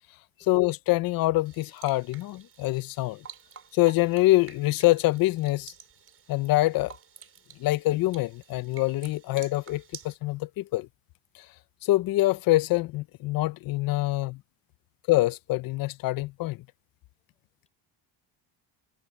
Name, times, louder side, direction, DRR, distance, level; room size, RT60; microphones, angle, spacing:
voice 1, 0.5-3.3 3.7-5.7 6.3-6.9 7.6-10.9 11.3-11.5 11.8-14.4 15.1-16.6, left 18 dB, 50° left, 0.5 m, -25 dB
sound 1, 1.4-10.1, right 7 dB, 30° right, 5.1 m, -50 dB
voice 2, 17.3-17.7, left 4 dB, 15° left, 4.7 m, -70 dB
cardioid pair, 170°, 45 cm